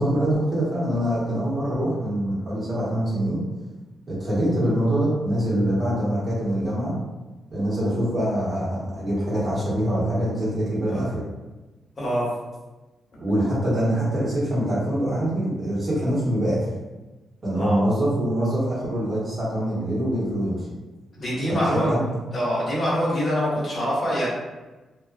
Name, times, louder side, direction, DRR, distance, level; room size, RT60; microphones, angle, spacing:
voice 1, 0.0-3.4 4.1-6.9 7.5-11.2 13.2-16.7 17.4-20.7 21.7-22.0, right 1 dB, 40° right, -9 dB, 1.3 m, -24 dB
voice 2, 12.0-12.3 17.5-17.8 21.2-24.3, equal, 40° left, -8 dB, 1.4 m, -25 dB
2.8 x 2.3 x 2.3 m, 1.2 s
cardioid pair, 100°, 0 cm